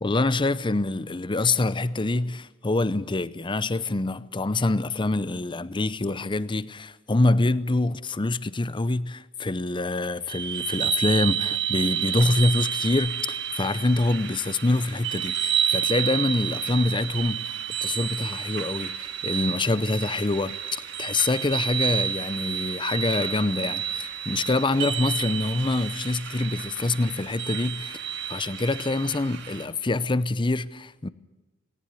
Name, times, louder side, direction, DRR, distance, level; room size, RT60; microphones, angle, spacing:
voice 1, 0.0-17.5 17.8-28.0 28.3-31.1, left 2 dB, 25° left, 0.7 m, -25 dB
sound 1, 10.3-29.7, right 9 dB, 60° right, 2.6 m, -30 dB
18.5 x 18.0 x 9.9 m
head